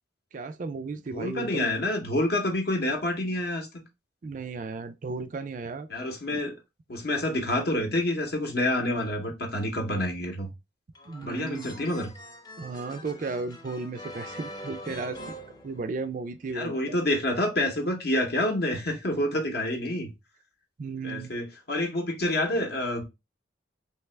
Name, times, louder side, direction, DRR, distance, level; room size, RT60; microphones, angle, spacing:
voice 1, 0.3-1.7 4.2-5.9 6.3-6.4 11.1-11.7 12.6-15.4 15.6-17.0 20.8-21.3, right 4 dB, 40° right, 0.3 m, -35 dB
voice 2, 1.1-3.7 5.9-6.6 6.9-10.5 11.2-12.1 16.5-20.1 21.0-23.0, left 1 dB, 55° left, 0.7 m, -28 dB
sound 1, 11.0-16.3, left 1 dB, 20° left, 0.5 m, -44 dB
3.3 x 2.8 x 3.2 m
head